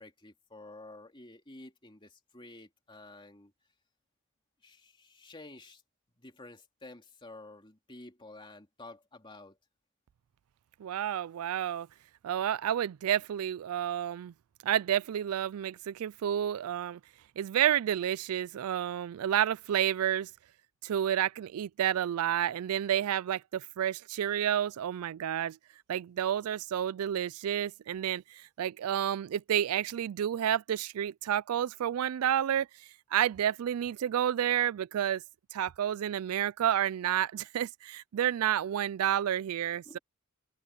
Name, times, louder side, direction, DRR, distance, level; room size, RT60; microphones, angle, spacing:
voice 1, 0.0-3.5 4.6-5.8 6.2-9.6 39.8-40.0, left 2 dB, 25° left, 2.8 m, -51 dB
voice 2, 10.8-11.9 12.2-14.3 14.6-17.0 17.4-20.3 20.8-25.6 25.9-32.7 33.1-35.2 35.5-40.0, right 10 dB, 90° right, 0.3 m, -30 dB
open air
head